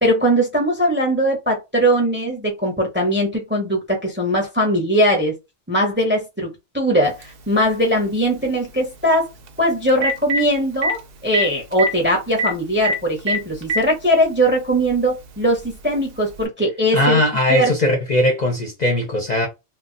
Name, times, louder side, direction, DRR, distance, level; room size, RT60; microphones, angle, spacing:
voice 1, 0.0-5.3 5.7-9.3 9.6-17.2 17.5-17.7, equal, 10° right, 0.6 m, -20 dB
Telephone, 7.2-7.3 9.5-9.6 9.9-10.4 10.8-10.9 11.3-11.4 11.7-11.9 12.4-12.5 12.8-13.0 13.3-13.8 14.8-14.9 16.4-16.5, right 1 dB, 60° right, 0.7 m, -20 dB
voice 2, 16.9-19.5, left 1 dB, 45° left, 0.6 m, -19 dB
2.3 x 2.1 x 3.7 m
omnidirectional pair, 1.2 m